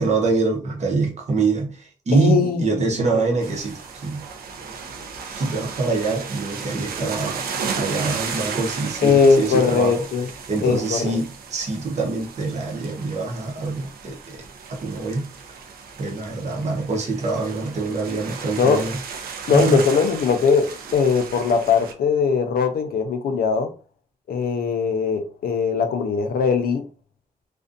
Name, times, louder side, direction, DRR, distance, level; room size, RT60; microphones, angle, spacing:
voice 1, 0.0-4.2 5.4-7.4 7.8-10.0 10.5-14.4 14.7-15.3 16.0-19.0 19.5-19.8, right 3 dB, 50° right, 0.8 m, -24 dB
voice 2, 2.1-2.6 9.0-10.3 10.6-11.1 18.6-18.8 19.5-23.7 24.3-26.8, left 5 dB, 90° left, 0.5 m, -20 dB
sound 1, 3.4-21.9, right 5 dB, 85° right, 0.4 m, -34 dB
2.5 x 2.2 x 2.5 m
wide cardioid pair, 115°, 15 cm